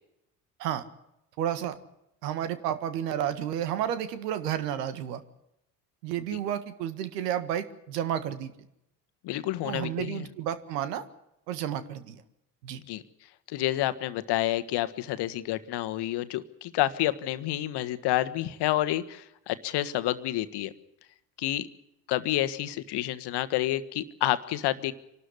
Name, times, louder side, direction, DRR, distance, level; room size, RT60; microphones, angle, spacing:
voice 1, 1.4-1.8 2.2-5.2 6.0-8.5 9.6-11.0 11.5-12.2 12.6-12.8, right 10 dB, 70° right, 13 dB, 1.8 m, -31 dB
voice 2, 9.2-10.3 12.9-13.0 13.5-20.7 21.4-21.7 22.1-24.9, left 14 dB, 50° left, 13 dB, 1.5 m, -29 dB
26.0 x 12.5 x 9.8 m, 0.82 s
figure-of-eight pair, 55°, 49 cm